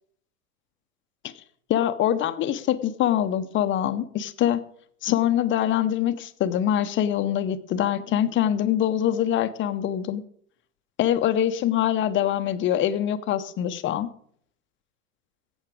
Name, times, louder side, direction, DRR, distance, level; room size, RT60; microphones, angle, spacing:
voice 1, 1.7-4.6 5.0-10.2 11.0-14.1, left 11 dB, 25° left, 11 dB, 0.8 m, -24 dB
14.0 x 8.1 x 5.0 m, 0.63 s
hypercardioid pair, 100°, 46 cm